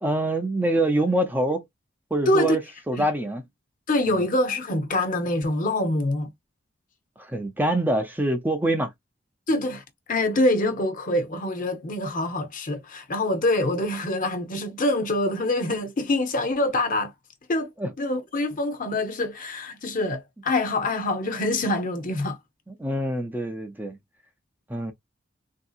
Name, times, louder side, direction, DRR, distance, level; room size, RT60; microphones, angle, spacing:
voice 1, 0.0-1.6 2.1-2.6 2.9-3.4 4.1-4.2 7.2-8.9 17.8-17.9 22.8-24.0 24.7-24.9, right 1 dB, 10° right, 0.5 m, -25 dB
voice 2, 2.3-2.6 3.0-3.1 3.9-6.3 9.5-17.1 17.5-17.7 18.0-22.4, left 1 dB, 45° left, 0.8 m, -25 dB
3.5 x 2.7 x 2.4 m
head